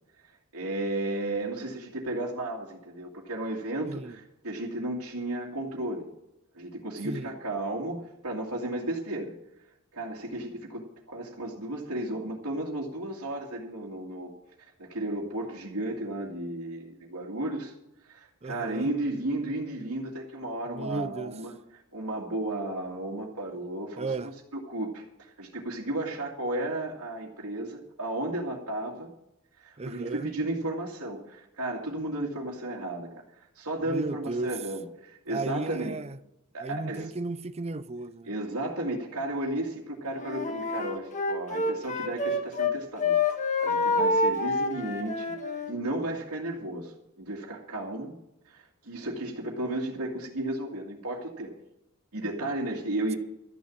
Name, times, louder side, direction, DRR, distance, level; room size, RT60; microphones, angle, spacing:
voice 1, 0.5-6.1 6.5-9.3 9.9-14.3 14.8-17.7 18.0-21.5 21.9-29.1 29.6-33.1 33.6-36.0 36.5-37.1 38.2-48.1 48.5-51.5 52.1-53.2, right 1 dB, 85° right, 2.2 m, -34 dB
voice 2, 3.9-4.2 7.0-7.3 18.4-18.9 20.7-21.3 24.0-24.3 29.8-30.3 33.8-34.5 35.3-36.2 36.6-38.3, right 2 dB, 30° right, 0.6 m, -34 dB
Wind instrument woodwind instrument, 40.1-42.7 43.0-45.8, left 3 dB, 35° left, 1.6 m, -27 dB
13.5 x 7.1 x 8.7 m
head